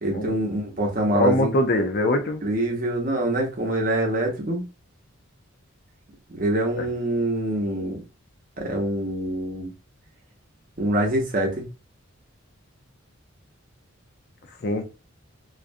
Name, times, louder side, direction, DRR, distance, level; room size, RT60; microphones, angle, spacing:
voice 1, 0.0-1.5 2.4-4.6 6.3-8.0 8.6-9.7 10.8-11.7, right 1 dB, 40° right, 0.7 m, -25 dB
voice 2, 1.1-2.4 6.8-6.9 14.6-14.8, left 1 dB, 45° left, 0.4 m, -22 dB
2.4 x 2.2 x 2.5 m
head